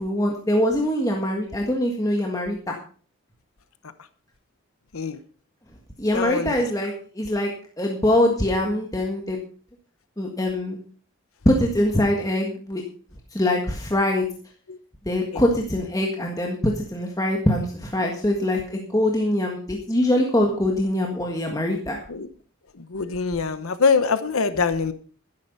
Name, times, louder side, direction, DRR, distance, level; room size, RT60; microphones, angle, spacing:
voice 1, 0.0-2.8 6.0-7.5 7.8-9.4 10.2-10.8 11.4-12.8 13.3-14.3 15.0-22.0, left 1 dB, 15° left, 0 dB, 1.7 m, -23 dB
voice 2, 6.1-6.6 15.3-15.4 22.1-22.3 22.9-24.9, left 5 dB, 90° left, 12 dB, 1.0 m, -23 dB
12.5 x 10.5 x 5.4 m, 0.43 s
head